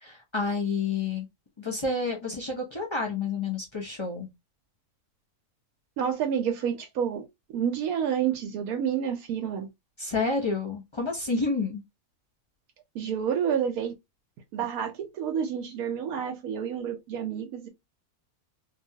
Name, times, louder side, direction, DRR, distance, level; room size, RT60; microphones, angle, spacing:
voice 1, 0.0-1.2 1.6-4.3 10.0-11.8, left 4 dB, 30° left, 0.5 m, -29 dB
voice 2, 6.0-9.7 12.9-13.9 14.5-17.7, right 8 dB, 80° right, 1.1 m, -29 dB
2.8 x 2.3 x 2.6 m
omnidirectional pair, 1.5 m